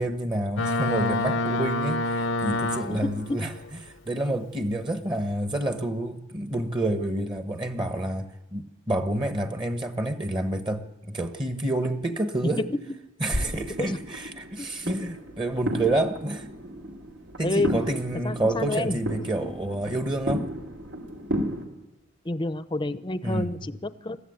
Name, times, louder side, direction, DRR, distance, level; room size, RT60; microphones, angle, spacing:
voice 1, 0.0-3.5 4.0-12.6 13.2-16.5 17.4-20.5 23.2-23.6, right 1 dB, 25° right, 8 dB, 1.2 m, -28 dB
Boat Water vehicle, 0.6-3.3, left 2 dB, 80° left, 0.9 m, -26 dB
voice 2, 2.9-3.4 12.6-12.8 13.8-14.0 14.6-14.7 15.0-15.1 17.4-17.7 18.2-19.0 22.2-24.2, left 2 dB, 25° left, 13 dB, 0.7 m, -29 dB
sound 1, 13.3-21.7, equal, 80° right, 3.0 m, -33 dB
22.0 x 14.5 x 9.6 m, 1.0 s
head